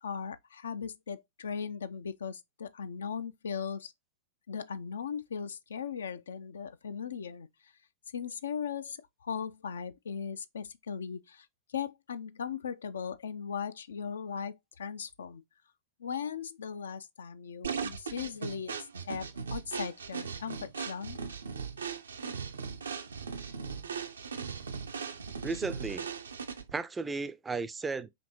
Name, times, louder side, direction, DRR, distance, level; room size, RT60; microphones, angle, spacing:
voice 1, 0.0-3.9 4.5-7.5 8.1-15.4 16.0-18.8 19.0-21.2, left 7 dB, 65° left, 0.4 m, -38 dB
sound 1, 17.6-26.8, right 6 dB, 70° right, 0.5 m, -38 dB
voice 2, 25.4-26.1 26.7-28.1, right 4 dB, 15° right, 0.4 m, -34 dB
5.1 x 2.7 x 3.0 m
figure-of-eight pair, 95°, 0 cm